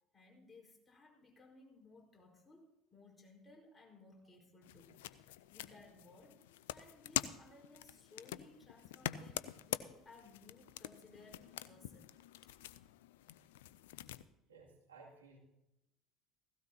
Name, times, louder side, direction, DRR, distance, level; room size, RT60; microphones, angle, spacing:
voice 1, 0.1-6.4 6.7-12.1, left 3 dB, 15° left, -1 dB, 4.8 m, -61 dB
sound 1, 4.6-14.2, left 13 dB, 75° left, 0.5 m, -45 dB
voice 2, 14.5-15.4, right 4 dB, 85° right, -2 dB, 2.5 m, -58 dB
16.5 x 16.0 x 2.9 m, 0.87 s
hypercardioid pair, 65°, 0 cm